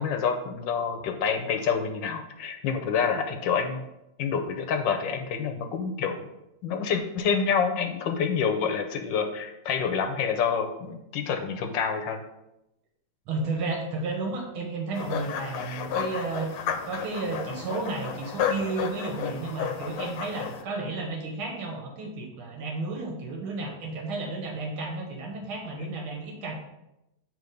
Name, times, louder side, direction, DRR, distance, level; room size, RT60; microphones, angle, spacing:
voice 1, 0.0-3.9 4.2-6.3 6.6-12.2, left 6 dB, 70° left, 5 dB, 1.3 m, -27 dB
voice 2, 13.3-26.5, right 3 dB, 85° right, 0 dB, 2.1 m, -33 dB
sound 1, 14.9-20.6, left 7 dB, 85° left, 1.5 m, -32 dB
8.9 x 3.3 x 5.1 m, 0.90 s
omnidirectional pair, 2.3 m